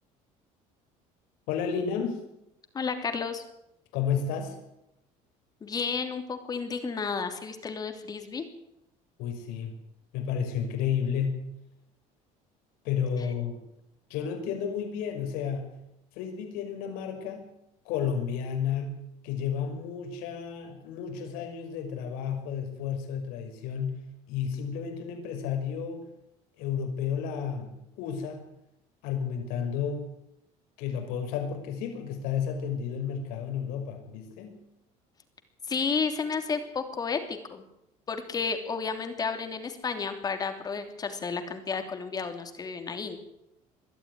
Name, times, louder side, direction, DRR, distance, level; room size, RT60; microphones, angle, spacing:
voice 1, 1.5-2.2 3.9-4.6 9.2-9.8 10.1-11.4 12.8-13.6 14.1-15.7 16.1-17.5 17.8-26.0 26.6-28.4 29.0-30.1 30.8-34.6, left 7 dB, 85° left, 4 dB, 5.8 m, -32 dB
voice 2, 2.7-3.4 5.6-8.4 35.7-37.6 38.1-43.2, left 5 dB, 25° left, 6 dB, 2.9 m, -32 dB
22.0 x 13.5 x 9.6 m, 0.84 s
cardioid pair, 150°, 15 cm